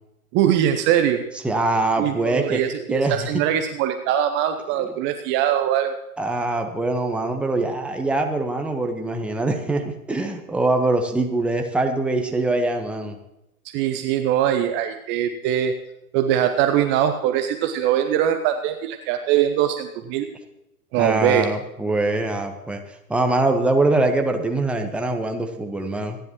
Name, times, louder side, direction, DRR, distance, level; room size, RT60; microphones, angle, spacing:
voice 1, 0.3-1.2 2.0-5.9 13.7-15.7 16.1-20.3 20.9-21.5, right 10 dB, 25° right, 7 dB, 0.8 m, -22 dB
voice 2, 1.4-2.6 2.9-3.3 4.8-4.9 6.2-13.2 21.0-26.2, right 2 dB, 5° right, 4 dB, 1.0 m, -23 dB
26.5 x 10.0 x 3.1 m, 0.89 s
figure-of-eight pair, 100°, 43 cm